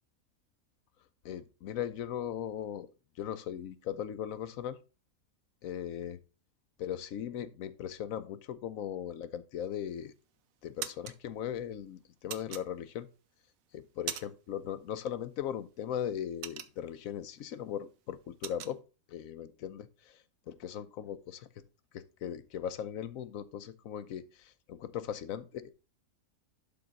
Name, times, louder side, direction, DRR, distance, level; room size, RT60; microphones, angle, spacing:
voice 1, 1.2-2.9 3.2-4.8 5.6-6.2 6.8-10.1 10.6-13.1 13.7-18.8 19.1-20.2 20.6-21.5 21.9-25.7, left 10 dB, 80° left, 1.1 m, -38 dB
sound 1, 9.8-10.2 10.5-11.2 12.3-13.1 13.6-14.6 14.8-15.1 15.5-17.2 17.5-17.7 18.0-18.8, right 10 dB, 80° right, 1.1 m, -41 dB
11.5 x 3.9 x 3.9 m
omnidirectional pair, 1.4 m